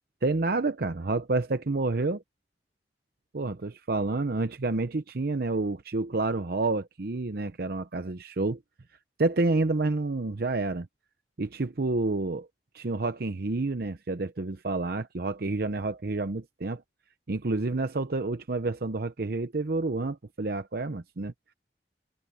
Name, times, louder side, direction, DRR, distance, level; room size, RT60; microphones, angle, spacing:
voice 1, 0.2-2.2 3.3-8.6 9.2-10.9 11.4-12.5 12.7-16.8 17.3-21.5, right 3 dB, 55° right, 0.7 m, -29 dB
head